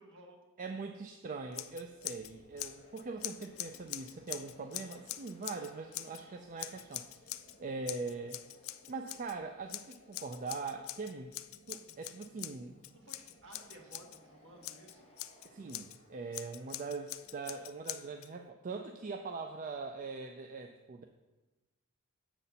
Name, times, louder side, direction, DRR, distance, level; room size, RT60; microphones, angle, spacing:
voice 1, 0.0-0.4 12.9-15.1, right 2 dB, 55° right, 0 dB, 1.5 m, -55 dB
voice 2, 0.6-7.3 7.6-8.4 8.9-11.3 11.7-12.8 15.4-21.0, right 4 dB, 35° right, 5 dB, 0.4 m, -42 dB
Scissors, 1.5-2.3 2.6-6.2 6.6-7.6 7.9-9.4 9.7-14.2 14.6-16.0 16.3-18.3, left 15 dB, 65° left, 0.3 m, -44 dB
sound 1, 1.8-17.8, equal, 25° left, 1.1 m, -63 dB
7.4 x 4.1 x 6.8 m, 1.1 s
head